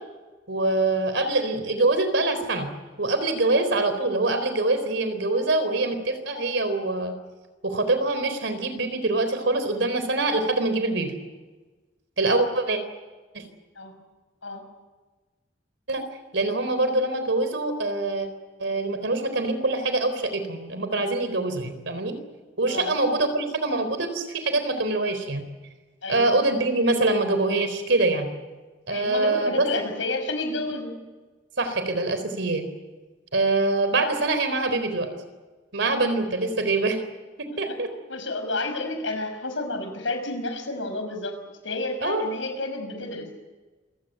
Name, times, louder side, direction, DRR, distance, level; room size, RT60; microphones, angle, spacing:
voice 1, 0.5-2.7 3.0-7.1 7.6-11.1 12.2-12.8 13.3-13.4 15.9-16.0 16.3-18.3 18.6-22.1 22.6-25.4 26.1-28.3 28.9-29.7 31.6-32.6 33.3-35.1 35.7-37.0 37.4-37.9 42.0-42.3, right 2 dB, 70° right, 9 dB, 4.0 m, -24 dB
voice 2, 22.7-23.0 26.0-26.4 28.9-30.9 37.7-37.8 38.1-41.4 41.6-43.3, left 2 dB, 85° left, 6 dB, 5.7 m, -30 dB
27.0 x 17.0 x 9.4 m, 1.3 s
head